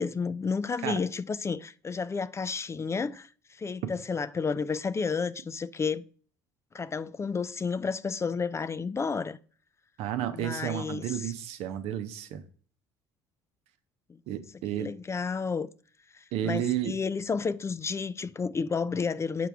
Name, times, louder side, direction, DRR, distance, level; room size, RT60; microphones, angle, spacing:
voice 1, 0.0-6.0 6.7-9.4 10.3-11.3 14.8-15.7 16.1-19.5, left 5 dB, 25° left, 0.3 m, -31 dB
voice 2, 10.0-12.4 14.3-14.9 16.3-16.9, right 11 dB, 70° right, 0.7 m, -32 dB
6.0 x 4.6 x 3.4 m
supercardioid pair, 75°, 11 cm